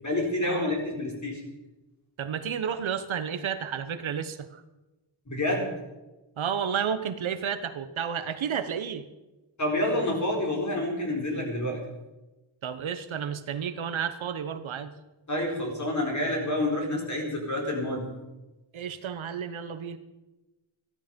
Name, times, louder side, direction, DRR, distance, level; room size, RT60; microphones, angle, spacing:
voice 1, 0.0-1.4 5.3-5.7 9.6-11.8 15.3-18.1, left 1 dB, 35° left, 0 dB, 4.2 m, -28 dB
voice 2, 2.2-4.6 6.4-9.0 12.6-14.9 18.7-20.0, right 7 dB, 75° right, 11 dB, 1.1 m, -31 dB
15.0 x 13.0 x 5.3 m, 1.0 s
wide cardioid pair, 130°, 48 cm